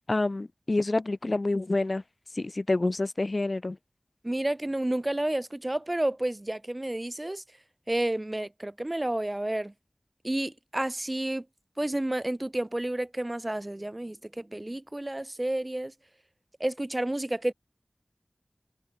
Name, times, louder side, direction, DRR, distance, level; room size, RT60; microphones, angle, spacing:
voice 1, 0.1-2.0 2.3-3.8, left 2 dB, 60° left, 0.6 m, -27 dB
voice 2, 4.2-7.4 7.9-9.7 10.2-11.4 11.8-15.9 16.6-17.5, right 1 dB, 30° right, 2.2 m, -30 dB
open air
wide cardioid pair, 50°, 0 cm